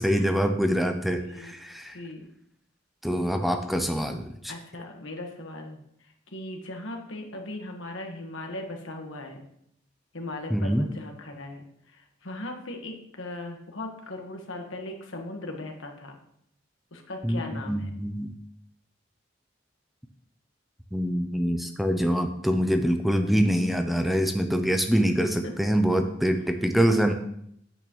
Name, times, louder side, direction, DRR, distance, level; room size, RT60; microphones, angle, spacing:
voice 1, 0.0-2.0 3.0-4.5 10.5-10.9 17.2-18.3 20.9-27.1, equal, ahead, 6 dB, 0.5 m, -25 dB
voice 2, 1.2-1.5 1.9-2.2 4.5-9.4 10.1-16.2 16.9-17.9 25.4-25.5, left 2 dB, 85° left, 3 dB, 1.5 m, -38 dB
8.9 x 8.5 x 3.1 m, 0.72 s
head